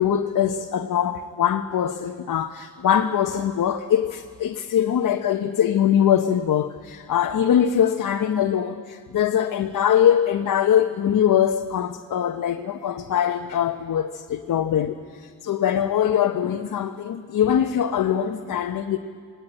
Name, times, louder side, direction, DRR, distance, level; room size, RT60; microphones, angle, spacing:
voice 1, 0.0-19.0, left 9 dB, 60° left, 5 dB, 0.9 m, -22 dB
19.0 x 18.0 x 8.8 m, 2.2 s
cardioid pair, 90°, 36 cm